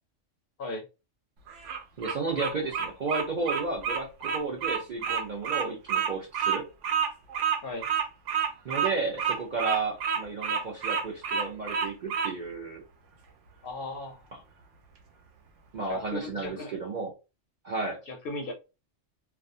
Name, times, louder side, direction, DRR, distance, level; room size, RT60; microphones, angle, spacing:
Bird vocalization bird call bird song, 1.5-12.3, right 7 dB, 80° right, 0.9 m, -29 dB
voice 1, 2.0-6.7 8.6-12.8 14.3-14.4 15.7-17.1 17.6-18.0, right 3 dB, 55° right, 0.5 m, -33 dB
voice 2, 13.6-14.2 15.8-16.8 18.1-18.5, left 2 dB, 60° left, 0.7 m, -36 dB
2.4 x 2.2 x 2.5 m
omnidirectional pair, 1.3 m